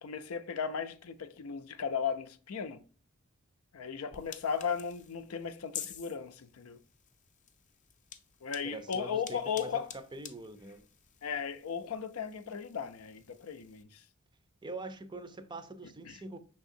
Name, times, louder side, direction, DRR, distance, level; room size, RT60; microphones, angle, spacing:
voice 1, 0.0-2.8 3.7-6.8 8.4-9.9 11.2-14.0 16.1-16.2, left 6 dB, 85° left, 0.5 m, -36 dB
sound 1, 4.1-13.8, left 8 dB, 35° left, 0.5 m, -50 dB
voice 2, 8.6-10.8 14.6-16.4, right 2 dB, 20° right, 0.5 m, -44 dB
5.8 x 3.5 x 2.6 m
head